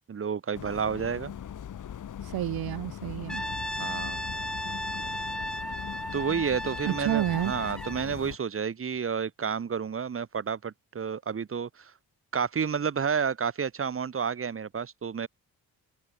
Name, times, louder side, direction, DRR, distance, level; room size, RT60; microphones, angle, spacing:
voice 1, 0.1-1.3 3.8-4.2 6.1-11.9 12.3-15.3, right 6 dB, 35° right, 3.9 m, -30 dB
sound 1, 0.5-8.4, left 9 dB, 55° left, 4.5 m, -40 dB
voice 2, 2.2-3.4 6.8-7.5, right 14 dB, 85° right, 1.2 m, -29 dB
Brass instrument, 3.3-8.1, equal, ahead, 4.0 m, -35 dB
cardioid pair, 150°, 36 cm